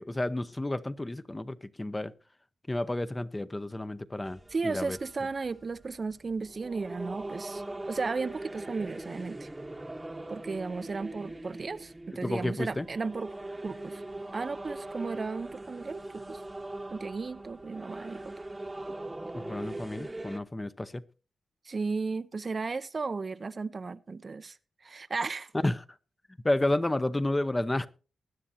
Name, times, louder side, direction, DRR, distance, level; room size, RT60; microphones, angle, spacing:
voice 1, 0.0-2.1 2.7-5.0 12.2-12.9 19.3-21.0 25.5-25.8 26.4-27.9, left 1 dB, 20° left, 0.7 m, -31 dB
sound 1, 4.3-20.4, right 2 dB, 15° right, 1.0 m, -41 dB
voice 2, 4.5-9.5 10.3-13.3 13.6-14.0 14.3-16.4 16.9-18.3 21.6-24.6 24.8-25.5, right 4 dB, 40° right, 0.5 m, -35 dB
20.5 x 9.9 x 2.7 m
cardioid pair, 90°, 0 cm